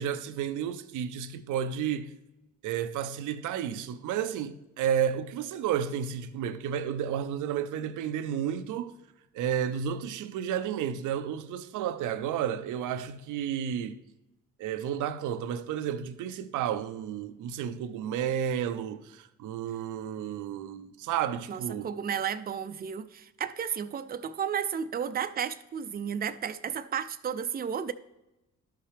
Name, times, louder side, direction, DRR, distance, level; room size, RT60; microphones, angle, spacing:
voice 1, 0.0-2.1 2.6-8.9 9.3-14.0 14.6-21.9, right 9 dB, 80° right, 0.6 m, -32 dB
voice 2, 21.5-27.9, right 8 dB, 30° right, 0.5 m, -33 dB
12.5 x 5.7 x 3.3 m
cardioid pair, 90°, 30 cm